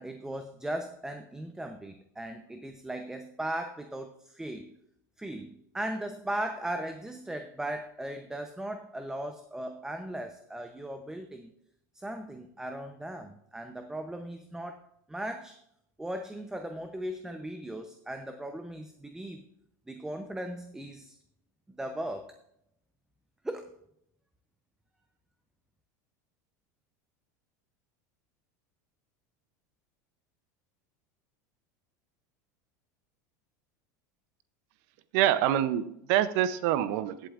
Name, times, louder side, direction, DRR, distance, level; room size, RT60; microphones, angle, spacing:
voice 1, 0.0-4.7 5.2-11.5 11.9-14.8 15.1-15.6 16.0-19.4 19.9-21.2 21.7-22.3 23.4-23.7, right 1 dB, 5° right, 6 dB, 0.7 m, -38 dB
voice 2, 35.1-37.3, right 12 dB, 65° right, 14 dB, 0.6 m, -26 dB
15.5 x 8.2 x 2.5 m, 0.76 s
supercardioid pair, 120°, 9 cm